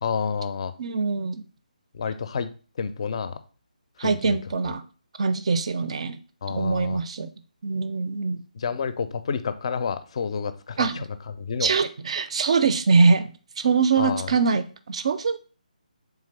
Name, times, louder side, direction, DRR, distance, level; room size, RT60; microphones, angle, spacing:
voice 1, 0.0-0.7 1.9-2.5 2.8-3.4 4.0-4.4 4.6-4.7 6.4-7.0 8.5-11.0 11.4-11.7 14.0-14.3, left 6 dB, 45° left, 11 dB, 0.4 m, -29 dB
voice 2, 0.8-1.4 4.0-4.8 5.2-6.2 6.5-7.3 7.6-8.4 10.8-11.0 11.6-15.4, right 4 dB, 45° right, 12 dB, 0.4 m, -23 dB
3.6 x 3.4 x 3.2 m, 0.37 s
figure-of-eight pair, 150°, 4 cm